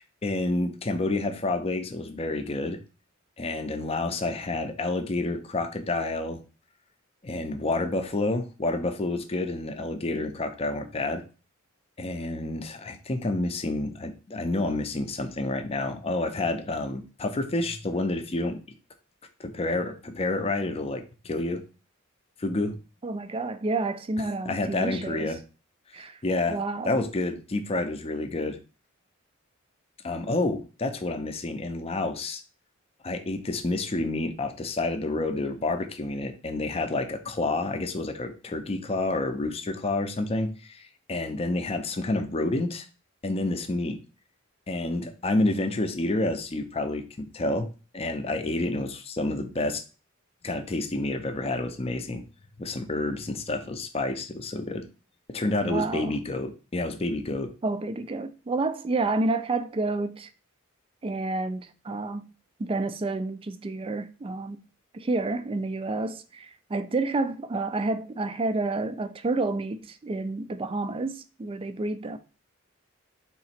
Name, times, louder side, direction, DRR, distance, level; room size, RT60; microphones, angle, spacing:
voice 1, 0.0-2.8 3.4-6.4 7.2-11.2 12.0-18.6 19.4-21.6 22.4-22.8 24.5-25.4 26.2-26.6 26.9-28.6 30.0-32.4 33.0-42.9 43.2-44.0 44.7-47.7 47.9-49.8 50.4-52.2 52.6-54.8 55.3-57.5, left 2 dB, 30° left, 0.5 m, -29 dB
voice 2, 23.0-25.3 25.9-26.2 26.5-27.0 55.6-56.2 57.6-60.3 61.0-62.3 62.6-64.6 64.9-72.2, right 3 dB, 25° right, 0.3 m, -29 dB
3.9 x 2.9 x 4.3 m
head